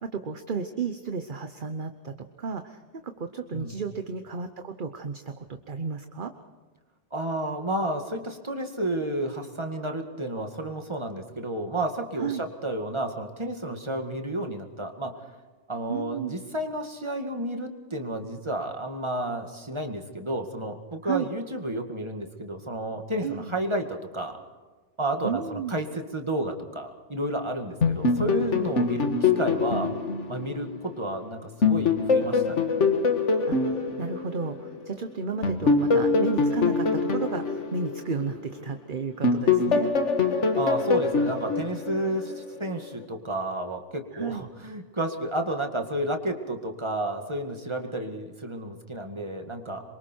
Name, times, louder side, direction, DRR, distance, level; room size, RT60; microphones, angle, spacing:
voice 1, 0.0-6.3 12.2-12.5 15.9-16.4 21.0-21.3 23.2-23.5 25.2-25.8 33.5-33.6 34.0-39.9 42.0-42.3 44.1-44.4, right 5 dB, 45° right, 8 dB, 1.1 m, -33 dB
voice 2, 7.1-15.2 15.7-24.4 25.0-29.9 30.3-32.6 40.6-49.8, right 1 dB, 25° right, 4 dB, 2.1 m, -31 dB
sound 1, 27.8-31.2 31.6-34.9 35.4-38.8 39.2-42.5, left 4 dB, 75° left, 2.0 m, -24 dB
27.0 x 24.0 x 4.6 m, 1.3 s
omnidirectional pair, 1.2 m